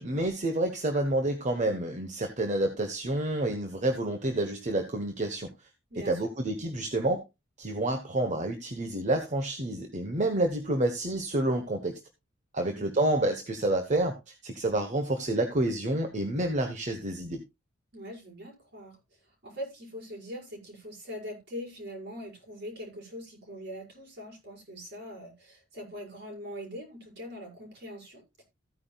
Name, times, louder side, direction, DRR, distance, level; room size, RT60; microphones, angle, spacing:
voice 1, 0.0-5.5 6.0-7.2 7.6-12.0 12.5-17.4, right 1 dB, 40° right, 1.1 m, -29 dB
voice 2, 5.9-6.2 12.6-12.9 17.9-19.0 19.2-28.4, equal, 60° right, 5.7 m, -42 dB
15.0 x 9.6 x 2.3 m
head